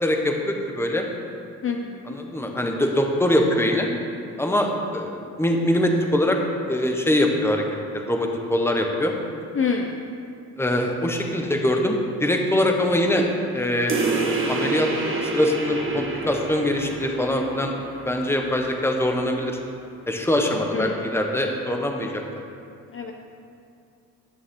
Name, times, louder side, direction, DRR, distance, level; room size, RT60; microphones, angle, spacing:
voice 1, 0.0-1.1 2.0-3.9 4.4-6.4 6.7-7.6 7.9-9.2 10.6-13.3 13.5-13.9 14.5-14.9 15.2-17.7 18.1-19.6 20.1-22.2, left 1 dB, 5° left, 2 dB, 1.1 m, -23 dB
voice 2, 9.6-10.0 20.7-20.9 22.9-23.1, left 6 dB, 35° left, 2 dB, 0.7 m, -26 dB
sound 1, 13.9-18.9, right 3 dB, 30° right, 1.3 m, -28 dB
11.5 x 6.3 x 3.7 m, 2.4 s
supercardioid pair, 80°, 39 cm